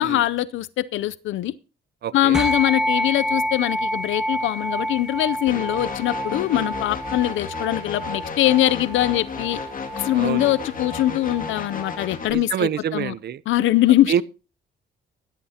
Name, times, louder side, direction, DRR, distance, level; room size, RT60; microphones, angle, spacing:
voice 1, 0.0-1.5 2.1-9.6 10.0-13.1 13.5-14.2, left 14 dB, 80° left, 0.6 m, -22 dB
voice 2, 2.0-2.4 6.5-6.7 10.1-10.5 12.3-13.4 14.1-14.2, right 9 dB, 55° right, 0.6 m, -26 dB
sound 1, 2.3-12.0, equal, 5° right, 1.2 m, -29 dB
sound 2, 5.5-12.3, left 5 dB, 45° left, 2.3 m, -34 dB
15.5 x 13.5 x 2.8 m
cardioid pair, 90°, 20 cm